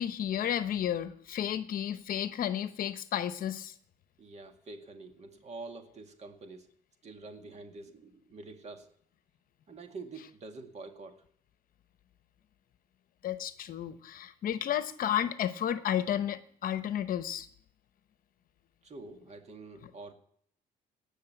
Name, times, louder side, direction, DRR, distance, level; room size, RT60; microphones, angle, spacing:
voice 1, 0.0-3.7 13.2-17.5, left 10 dB, 55° left, 12 dB, 0.9 m, -32 dB
voice 2, 4.2-6.7 7.0-8.9 9.7-11.2 18.8-20.1, right 3 dB, 40° right, 6 dB, 2.1 m, -46 dB
18.0 x 6.6 x 8.2 m, 0.64 s
cardioid pair, 110°, 17 cm